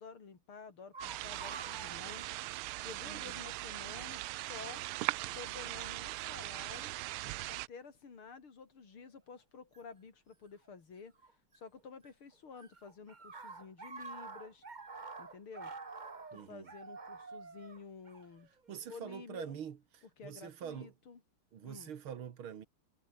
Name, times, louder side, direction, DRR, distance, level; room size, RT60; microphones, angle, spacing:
voice 1, 0.0-2.3 2.8-4.8 5.3-7.0 7.5-11.1 11.5-14.6 15.2-15.7 16.3-19.6 20.2-21.2 21.6-21.9, left 5 dB, 80° left, 4.0 m, -51 dB
sound 1, 0.9-3.0 3.3-3.4 4.4-4.7 5.7-5.9 6.6-7.1 9.7-9.8 11.2-12.1 12.3-18.9, right 4 dB, 25° right, 1.3 m, -49 dB
sound 2, 1.0-7.7, right 18 dB, 90° right, 1.5 m, -40 dB
voice 2, 3.0-3.4 16.3-16.7 18.7-20.9 21.5-22.7, right 8 dB, 75° right, 2.4 m, -45 dB
omnidirectional pair, 2.3 m